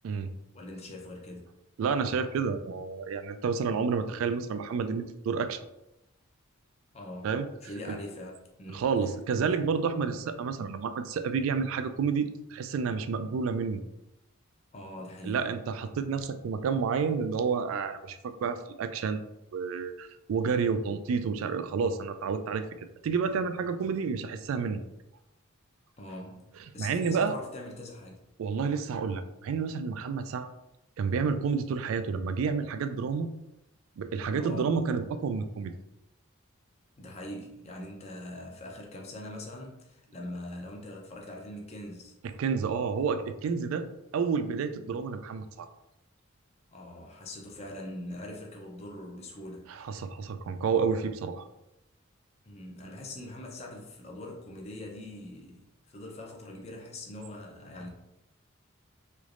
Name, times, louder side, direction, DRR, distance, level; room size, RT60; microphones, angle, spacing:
voice 1, 0.5-1.5 6.9-8.9 14.7-15.5 26.0-28.2 34.4-34.8 37.0-42.1 46.7-49.7 52.5-57.9, left 1 dB, 30° left, 0 dB, 0.5 m, -42 dB
voice 2, 1.8-5.6 7.2-7.5 7.9-8.0 8.7-13.8 15.2-19.3 19.5-22.7 23.0-24.8 26.8-27.3 28.4-30.5 31.0-33.3 34.0-35.7 42.4-43.9 44.1-45.7 49.7-51.4, right 5 dB, 80° right, 10 dB, 0.3 m, -30 dB
3.2 x 3.0 x 2.5 m, 0.88 s
head